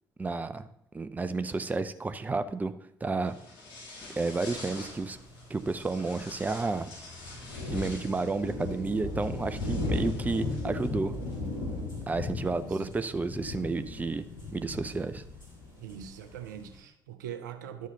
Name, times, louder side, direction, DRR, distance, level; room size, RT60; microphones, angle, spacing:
voice 1, 0.2-0.7 0.9-2.7 3.0-3.3 4.2-5.2 5.5-6.9 7.7-11.1 12.1-14.2 14.5-15.2, right 3 dB, 15° right, 12 dB, 0.5 m, -31 dB
sound 1, 3.2-11.8, left 2 dB, 55° left, 2.4 m, -47 dB
sound 2, 5.2-5.3 5.4-5.5 5.9-6.1 6.3-6.7 7.1-16.8, left 2 dB, 85° left, 2.2 m, -36 dB
voice 2, 12.5-12.9 15.8-17.9, right 9 dB, 75° right, 9 dB, 0.6 m, -42 dB
11.5 x 7.2 x 2.8 m, 0.77 s
figure-of-eight pair, 50°, 10 cm